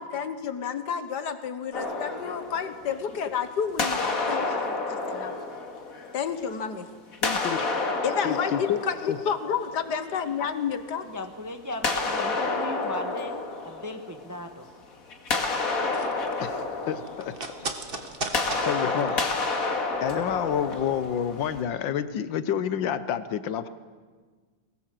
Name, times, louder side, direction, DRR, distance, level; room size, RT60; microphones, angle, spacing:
voice 1, 0.0-5.3 6.1-6.9 7.2-7.4 8.0-11.1, left 7 dB, 60° left, 10 dB, 1.7 m, -30 dB
sound 1, 1.7-3.4 3.8-6.6 7.1-10.0 11.8-14.6 14.9-21.6, left 3 dB, 45° left, 2.4 m, -30 dB
voice 2, 7.2-7.7 8.2-8.3 8.7-8.8 9.1-9.2 16.4-17.7 18.3-19.3 20.0-23.7, left 9 dB, 80° left, 13 dB, 1.6 m, -29 dB
voice 3, 11.0-13.4 13.6-14.7, left 1 dB, 10° right, 6 dB, 1.0 m, -37 dB
sound 2, 15.7-20.3 20.6-20.7, right 3 dB, 30° right, 1.6 m, -37 dB
22.0 x 18.5 x 7.7 m, 1.5 s
omnidirectional pair, 2.1 m